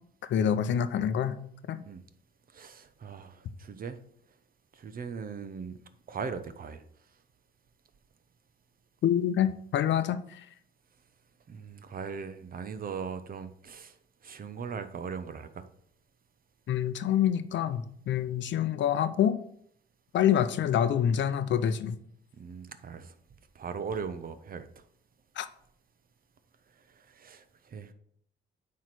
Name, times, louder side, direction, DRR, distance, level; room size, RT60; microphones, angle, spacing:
voice 1, 0.3-1.4 1.7-1.8 9.0-10.5 16.7-19.4 20.1-22.0 25.4-25.5, left 9 dB, 65° left, 12 dB, 0.7 m, -26 dB
voice 2, 2.5-4.0 4.7-5.8 6.1-6.9 11.5-14.0 14.2-15.6 22.3-23.1 23.5-24.7 27.0-27.9, right 6 dB, 45° right, 10 dB, 0.8 m, -39 dB
9.2 x 3.2 x 6.0 m, 0.66 s
cardioid pair, 90°, 20 cm